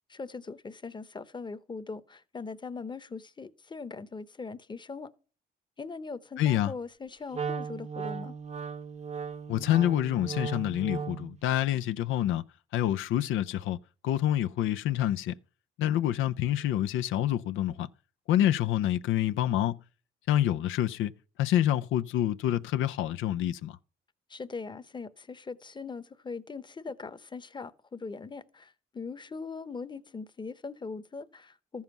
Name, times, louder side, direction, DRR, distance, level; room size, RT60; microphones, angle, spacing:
voice 1, 0.1-5.1 5.8-8.3 24.3-31.8, left 4 dB, 25° left, 0.9 m, -40 dB
voice 2, 6.4-6.7 9.5-12.4 12.7-13.8 14.0-15.3 15.8-17.9 18.3-19.8 20.3-21.1 21.4-23.8, left 12 dB, 85° left, 0.5 m, -27 dB
Wind instrument woodwind instrument, 7.3-11.4, right 6 dB, 35° right, 0.8 m, -36 dB
13.5 x 7.2 x 5.9 m
cardioid pair, 90°, 20 cm